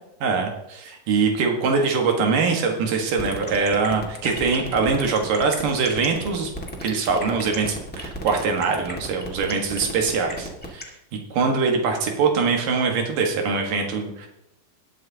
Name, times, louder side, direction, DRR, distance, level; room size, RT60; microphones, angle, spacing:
voice 1, 0.2-6.5 6.8-10.8 11.3-14.3, right 4 dB, 80° right, 3 dB, 3.2 m, -23 dB
sound 1, 3.2-10.8, equal, 15° left, 0.3 m, -34 dB
19.5 x 7.7 x 2.9 m, 0.85 s
omnidirectional pair, 3.8 m